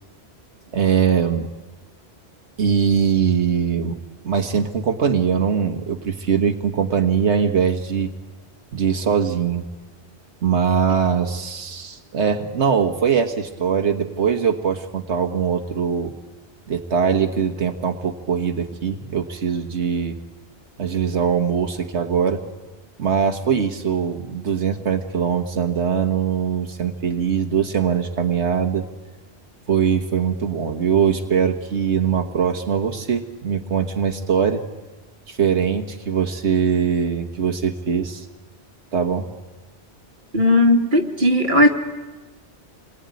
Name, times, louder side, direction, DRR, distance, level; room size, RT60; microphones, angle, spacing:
voice 1, 0.7-1.5 2.6-4.0 4.2-8.1 8.7-9.6 10.4-16.1 16.7-20.2 20.8-22.4 23.0-28.9 29.7-34.6 35.3-38.3 38.9-39.3, right 7 dB, 85° right, 4 dB, 1.7 m, -21 dB
voice 2, 40.3-41.7, left 1 dB, 45° right, 1 dB, 2.5 m, -16 dB
28.0 x 21.0 x 9.5 m, 1.2 s
omnidirectional pair, 1.1 m